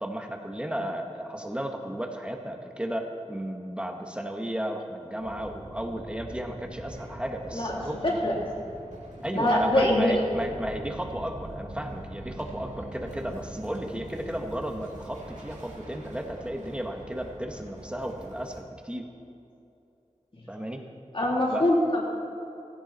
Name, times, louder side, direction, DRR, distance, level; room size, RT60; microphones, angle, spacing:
voice 1, 0.0-8.0 9.2-19.0 20.5-20.8 21.5-21.6, right 1 dB, 10° right, 2 dB, 1.8 m, -34 dB
sound 1, 5.2-18.6, right 1 dB, 85° right, 2.9 m, -43 dB
voice 2, 7.5-8.3 9.3-10.4 20.3-20.4 21.1-22.2, left 1 dB, 50° left, -3 dB, 3.8 m, -24 dB
17.5 x 16.5 x 4.5 m, 2.7 s
wide cardioid pair, 70°, 12 cm